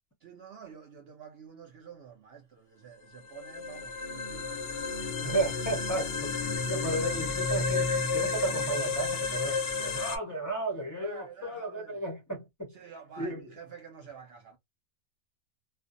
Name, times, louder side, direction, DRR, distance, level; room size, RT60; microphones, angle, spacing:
voice 1, 0.2-4.6 5.2-5.3 10.9-12.0 12.7-14.6, right 7 dB, 65° right, 0.6 m, -48 dB
sound 1, 3.2-10.2, left 4 dB, 65° left, 0.6 m, -31 dB
voice 2, 5.2-6.3 6.7-13.4, right 2 dB, 20° left, 0.5 m, -34 dB
2.5 x 2.1 x 2.5 m
omnidirectional pair, 1.5 m